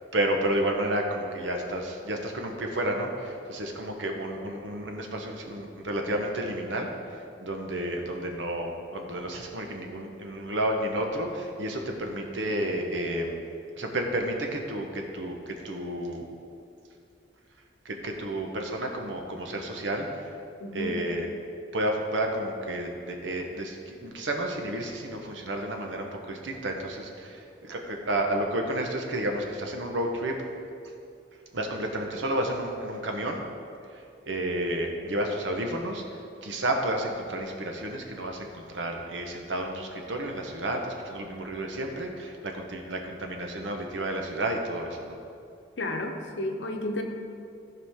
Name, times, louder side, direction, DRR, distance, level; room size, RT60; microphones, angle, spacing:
voice 1, 0.1-6.9 7.4-13.4 13.8-16.3 17.8-20.3 20.7-21.3 21.7-30.4 31.5-33.4 34.3-36.0 36.4-45.2, right 1 dB, 85° right, 2 dB, 1.1 m, -31 dB
voice 2, 20.6-21.0 45.8-47.0, left 1 dB, 80° left, 3 dB, 0.9 m, -32 dB
14.5 x 4.9 x 3.7 m, 2.5 s
head